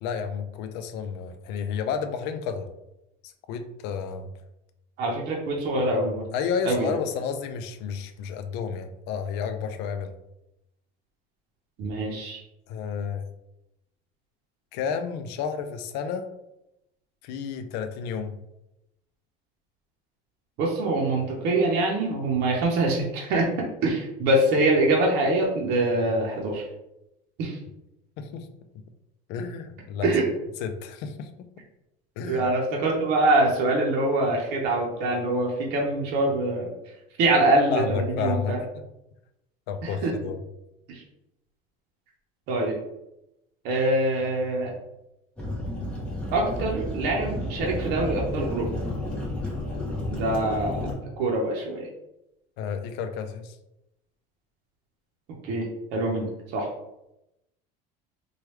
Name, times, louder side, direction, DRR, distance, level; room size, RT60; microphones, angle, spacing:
voice 1, 0.0-2.7 3.5-4.3 6.3-10.1 12.7-13.2 14.7-16.3 17.2-18.4 28.2-28.5 29.3-30.1 30.6-31.5 32.2-32.5 37.7-38.6 39.7-40.4 52.6-53.6, left 6 dB, 60° left, 8 dB, 0.4 m, -31 dB
voice 2, 5.0-6.3 6.7-6.9 11.8-12.4 20.6-26.6 27.4-27.6 30.0-30.3 32.2-36.7 37.2-38.6 39.8-40.1 40.9-41.0 42.5-42.8 43.6-44.7 46.3-48.7 50.1-51.9 55.4-55.7 55.9-56.7, right 2 dB, 55° right, -2 dB, 0.7 m, -24 dB
sound 1, 45.4-50.9, left 1 dB, 5° left, 0.7 m, -31 dB
3.1 x 2.3 x 3.1 m, 0.89 s
cardioid pair, 140°, 20 cm